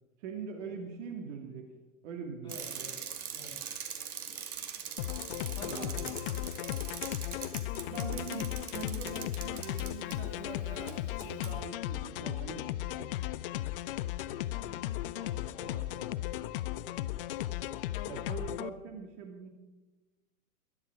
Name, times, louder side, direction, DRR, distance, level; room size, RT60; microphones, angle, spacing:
voice 1, 0.2-1.7 2.0-2.9 5.6-6.1 7.9-13.1 18.1-19.5, right 6 dB, 50° right, 3 dB, 2.3 m, -43 dB
voice 2, 2.4-2.9 3.3-3.6 5.4-6.4 14.5-17.2, left 1 dB, 10° left, -4 dB, 6.7 m, -50 dB
Bicycle, 2.5-10.2 10.9-11.0 11.2-11.5, right 8 dB, 70° right, 2.3 m, -42 dB
sound 1, 5.0-18.7, left 14 dB, 40° left, 0.5 m, -36 dB
21.0 x 11.0 x 4.7 m, 1.2 s
hypercardioid pair, 110°, 45 cm